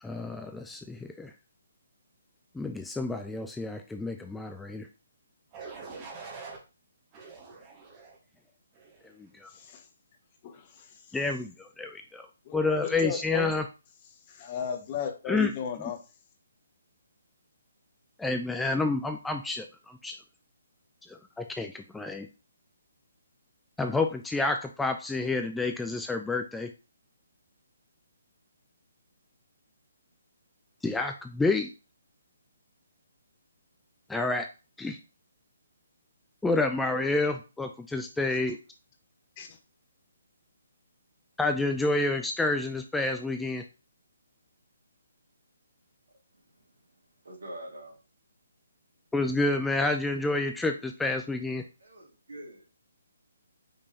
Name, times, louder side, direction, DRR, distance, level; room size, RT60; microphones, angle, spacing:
voice 1, 0.0-1.3 2.6-4.9 9.4-9.5 11.1-12.3 12.5-13.6 15.3-15.5 18.2-20.2 21.1-22.3 23.8-26.7 30.8-31.7 34.1-34.5 34.8-35.0 36.4-38.6 41.4-43.6 49.1-51.6, left 3 dB, 5° left, 0.3 m, -29 dB
sound 1, 5.5-6.6 7.1-8.2 8.7-9.1, right 4 dB, 25° right, 1.0 m, -44 dB
voice 2, 9.5-9.8 10.4-11.2 12.4-13.5 14.3-16.0 39.4-39.6, left 7 dB, 30° left, 0.8 m, -36 dB
voice 3, 46.3-46.9 47.2-48.0 51.8-52.7, right 1 dB, 70° right, 2.0 m, -45 dB
5.1 x 3.3 x 2.7 m
figure-of-eight pair, 140°, 0 cm